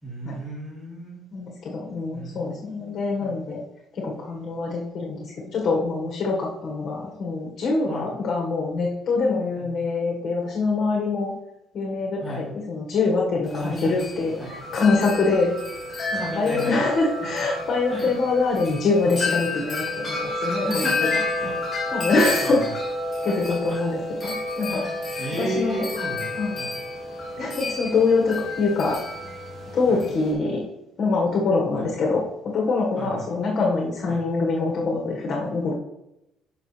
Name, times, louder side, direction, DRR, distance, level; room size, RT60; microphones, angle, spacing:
voice 1, 0.0-1.2 2.1-3.4 7.9-8.1 9.6-9.7 12.2-12.4 13.5-14.0 14.4-14.5 16.1-16.8 17.9-18.1 20.5-21.5 22.2-22.7 23.3-23.8 24.7-26.7 29.9-30.0 31.7-31.9 33.0-33.2 34.1-34.2, equal, 10° right, -10 dB, 3.4 m, -34 dB
voice 2, 1.3-3.6 3.9-11.3 11.7-15.5 16.1-21.2 21.9-22.6 23.2-24.9 25.4-25.8 26.4-26.6 27.4-29.0 29.7-30.6 31.0-32.2 32.5-35.7, left 3 dB, 40° left, -2 dB, 1.6 m, -24 dB
Wind chime, 13.5-30.3, left 2 dB, 20° left, 2.4 m, -30 dB
13.0 x 5.3 x 3.3 m, 0.89 s
cardioid pair, 150°, 0 cm